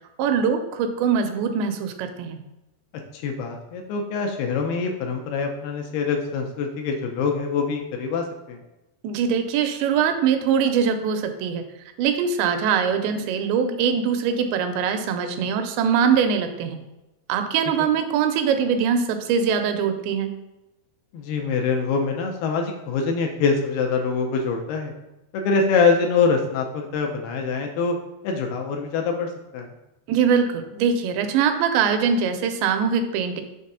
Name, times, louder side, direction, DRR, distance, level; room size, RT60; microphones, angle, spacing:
voice 1, 0.2-2.4 9.0-11.6 12.0-16.8 17.3-20.3 30.1-33.4, right 7 dB, 80° right, 7 dB, 2.8 m, -22 dB
voice 2, 3.1-8.6 21.1-24.9 25.3-28.0 28.2-29.7, left 5 dB, 80° left, 2 dB, 2.2 m, -24 dB
6.6 x 3.5 x 5.4 m, 0.97 s
omnidirectional pair, 5.1 m